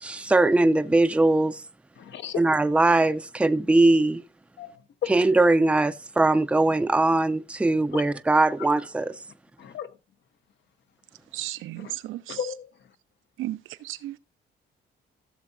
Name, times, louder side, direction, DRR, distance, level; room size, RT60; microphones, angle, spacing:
voice 1, 0.0-1.6 2.4-4.2 5.1-9.1, right 2 dB, 5° right, 0.5 m, -21 dB
voice 2, 2.0-2.4 4.6-5.4 7.9-8.0 9.6-10.0 11.8-11.9 12.3-12.9, left 9 dB, 65° left, 0.9 m, -35 dB
voice 3, 11.3-12.4 13.4-14.2, right 15 dB, 90° right, 0.7 m, -34 dB
15.5 x 6.9 x 2.6 m
cardioid pair, 90°, 20 cm